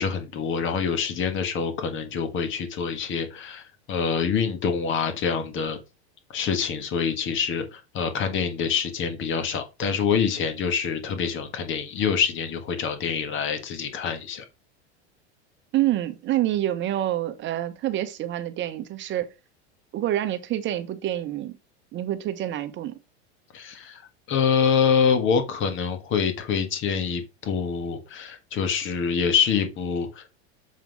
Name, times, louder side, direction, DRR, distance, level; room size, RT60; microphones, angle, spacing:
voice 1, 0.0-5.8 6.3-14.4 23.5-24.0 24.3-30.3, left 6 dB, 35° left, 1.6 m, -26 dB
voice 2, 15.7-19.3 19.9-21.5 21.9-22.9, right 13 dB, 35° right, 1.0 m, -27 dB
7.4 x 3.8 x 4.7 m
supercardioid pair, 125°, 33 cm